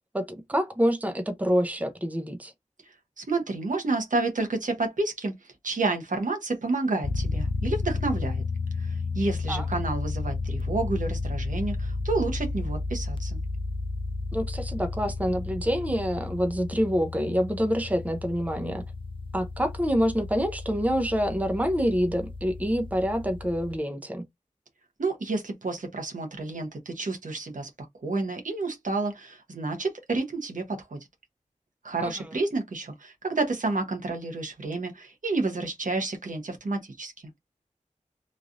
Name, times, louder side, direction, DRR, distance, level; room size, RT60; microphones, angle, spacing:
voice 1, 0.1-2.5 9.5-9.7 14.3-18.8 19.3-24.2 32.0-32.1, equal, 10° right, 0.6 m, -27 dB
voice 2, 3.2-5.3 5.6-8.4 8.8-13.4 25.0-27.7 28.0-31.0 31.8-37.1, right 3 dB, 80° right, 1.0 m, -30 dB
sound 1, 7.0-23.8, left 3 dB, 40° left, 0.4 m, -32 dB
3.2 x 2.5 x 2.5 m
wide cardioid pair, 65°, 13 cm